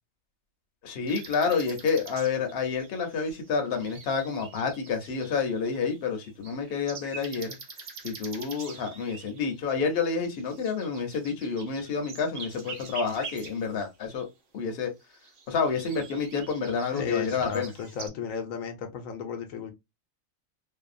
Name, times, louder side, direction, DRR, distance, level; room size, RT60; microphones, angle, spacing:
voice 1, 0.8-7.6 8.0-14.3 14.5-14.9 15.5-17.7, left 5 dB, 55° left, 0.8 m, -29 dB
sound 1, 1.1-14.2 15.0-18.1, right 4 dB, 50° right, 0.7 m, -45 dB
voice 2, 16.9-19.7, left 6 dB, 85° left, 1.0 m, -34 dB
2.6 x 2.2 x 2.4 m
omnidirectional pair, 1.4 m